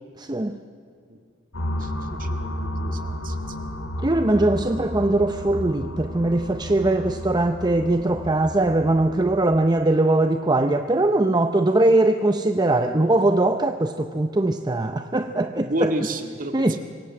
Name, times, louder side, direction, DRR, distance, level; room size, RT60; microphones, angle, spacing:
voice 1, 0.2-0.6 4.0-15.9 16.5-16.8, right 2 dB, 20° right, 8 dB, 0.7 m, -21 dB
sound 1, 1.5-9.6, equal, 70° left, 3.3 m, -32 dB
voice 2, 1.7-3.6 15.6-16.8, right 1 dB, 45° right, 6 dB, 2.0 m, -31 dB
26.0 x 22.5 x 7.7 m, 2.4 s
head